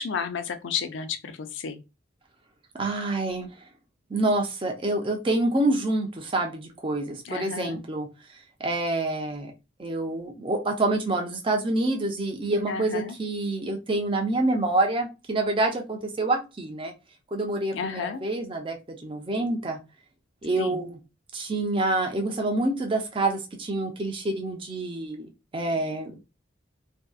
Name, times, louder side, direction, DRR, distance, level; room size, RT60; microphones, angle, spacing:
voice 1, 0.0-1.8 7.2-7.8 12.7-13.2 17.7-18.2 20.6-20.8, left 6 dB, 75° left, 0.4 m, -32 dB
voice 2, 2.7-3.6 4.1-8.1 8.3-9.5 9.8-16.9 17.3-19.8 20.4-21.0 21.3-26.2, right 2 dB, 25° right, 0.5 m, -27 dB
2.6 x 2.2 x 2.3 m
head